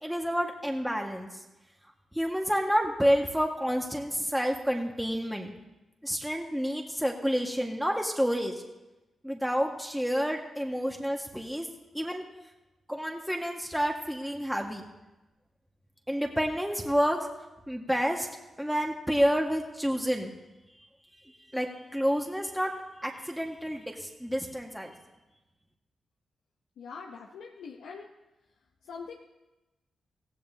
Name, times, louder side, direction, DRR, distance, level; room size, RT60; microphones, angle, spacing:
voice 1, 0.0-1.3 2.1-5.5 6.0-8.5 9.2-11.7 11.9-12.2 12.9-14.8 16.1-17.3 17.7-18.3 18.6-20.3 21.5-22.7 23.0-24.9, equal, 5° right, 1 dB, 1.7 m, -29 dB
voice 2, 26.8-28.1 28.8-29.1, left 5 dB, 80° left, 1 dB, 0.8 m, -43 dB
16.5 x 15.5 x 2.8 m, 1.0 s
supercardioid pair, 40°, 0 cm